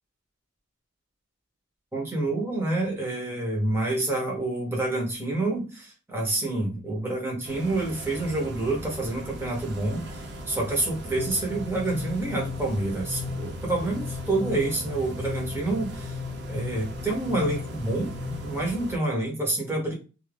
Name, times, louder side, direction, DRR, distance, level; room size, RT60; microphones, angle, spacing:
voice 1, 1.9-16.2 16.5-18.1 18.4-19.9, right 2 dB, 10° right, -2 dB, 0.9 m, -28 dB
sound 1, 7.4-19.0, right 1 dB, 50° right, 0.5 m, -39 dB
sound 2, 11.2-18.7, left 6 dB, 90° left, 0.3 m, -37 dB
2.7 x 2.5 x 3.3 m, 0.33 s
head